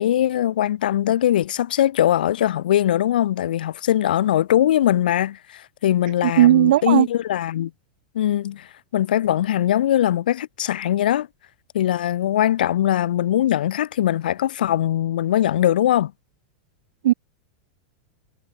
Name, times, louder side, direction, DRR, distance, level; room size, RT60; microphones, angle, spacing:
voice 1, 0.0-7.7 8.1-11.3 11.7-16.1, left 12 dB, 90° left, 1.1 m, -21 dB
voice 2, 6.2-7.1 17.0-17.1, right 13 dB, 75° right, 0.4 m, -15 dB
supercardioid pair, 170°, 5 cm